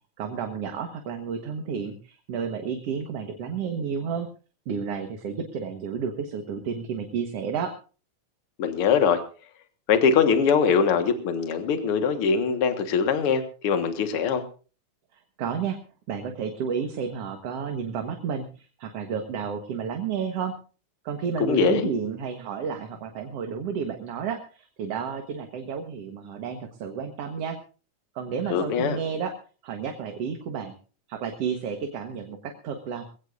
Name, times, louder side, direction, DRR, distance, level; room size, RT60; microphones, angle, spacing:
voice 1, 0.2-4.3 4.7-7.7 15.1-15.8 16.1-20.5 21.0-27.6 28.2-29.3 29.6-30.7 31.1-33.1, right 6 dB, 60° right, 5 dB, 2.3 m, -31 dB
voice 2, 8.6-9.2 9.9-14.4 21.4-21.9 28.5-29.0, left 6 dB, 55° left, 7 dB, 2.3 m, -22 dB
21.5 x 16.5 x 2.6 m, 0.36 s
omnidirectional pair, 3.3 m